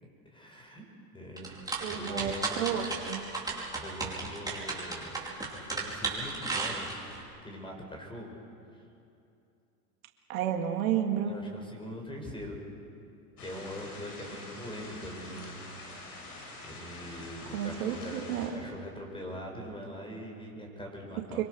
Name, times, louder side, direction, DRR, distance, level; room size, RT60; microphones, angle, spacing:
voice 1, 0.3-0.9 1.1-2.9 3.8-5.2 5.5-6.9 7.4-8.3 8.7-8.8 11.2-12.6 13.4-15.6 16.0-16.1 16.6-21.4, equal, 10° left, 1 dB, 5.9 m, -42 dB
sound 1, 1.4-7.2, right 3 dB, 10° right, 5.2 m, -34 dB
voice 2, 1.8-3.3 10.3-11.3 17.5-18.5 21.3-21.4, right 9 dB, 65° right, 3 dB, 2.2 m, -31 dB
sound 2, 13.4-18.5, left 2 dB, 85° left, 6.4 m, -45 dB
25.5 x 24.0 x 6.5 m, 2.6 s
hypercardioid pair, 100°, 45 cm